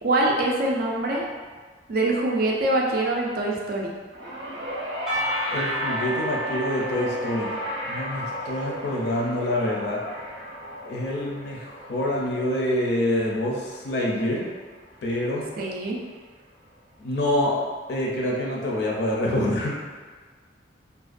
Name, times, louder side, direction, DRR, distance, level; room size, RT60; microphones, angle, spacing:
voice 1, 0.0-1.3 1.9-3.9 15.6-16.0, right 2 dB, 50° right, -2 dB, 0.4 m, -24 dB
sound 1, 4.1-14.6 15.6-15.7, equal, 85° right, 0.7 m, -34 dB
Percussion / Church bell, 5.1-10.1, equal, ahead, 0.6 m, -34 dB
voice 2, 5.5-7.5 7.9-10.0 10.8-14.4 15.0-15.4 17.0-17.6 17.9-19.7, left 1 dB, 60° left, -3 dB, 0.5 m, -26 dB
2.4 x 2.1 x 2.4 m, 1.5 s
head